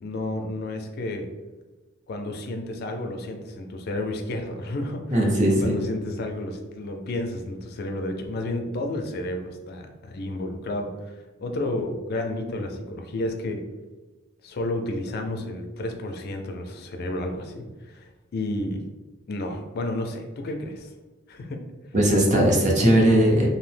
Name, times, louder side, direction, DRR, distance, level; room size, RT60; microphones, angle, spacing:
voice 1, 0.0-1.3 2.1-13.6 14.4-18.8 19.3-20.9 21.3-21.6, left 1 dB, 50° left, 5 dB, 0.3 m, -31 dB
voice 2, 5.1-5.7 21.9-23.5, right 1 dB, 35° right, 0 dB, 0.6 m, -19 dB
2.7 x 2.0 x 3.2 m, 1.2 s
head